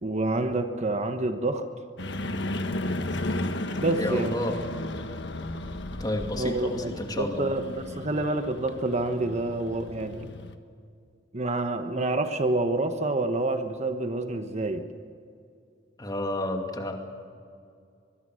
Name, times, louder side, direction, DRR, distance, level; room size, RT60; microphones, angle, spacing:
voice 1, 0.0-1.6 3.8-4.5 6.3-10.3 11.3-14.9, right 2 dB, 35° right, 7 dB, 1.2 m, -28 dB
sound 1, 2.0-10.6, left 1 dB, 65° left, 1.5 m, -34 dB
voice 2, 4.0-4.6 6.0-7.5 16.0-16.9, left 1 dB, 20° left, 3 dB, 2.6 m, -31 dB
24.5 x 22.0 x 6.5 m, 2.4 s
head